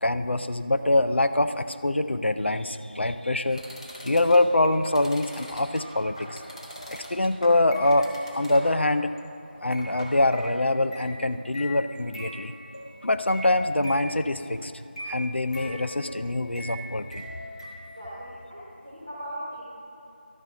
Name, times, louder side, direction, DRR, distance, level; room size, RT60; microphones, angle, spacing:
voice 1, 0.0-3.6 4.0-6.4 6.9-9.1 9.6-12.5 13.0-14.7 15.1-17.3, left 2 dB, 85° left, 10 dB, 0.5 m, -24 dB
sound 1, 3.5-8.9 9.2-9.4 9.7-18.0, equal, 35° left, 1.2 m, -41 dB
voice 2, 17.9-19.6, right 1 dB, 5° left, -12 dB, 0.7 m, -38 dB
12.0 x 4.1 x 5.8 m, 2.9 s
figure-of-eight pair, 180°, 6 cm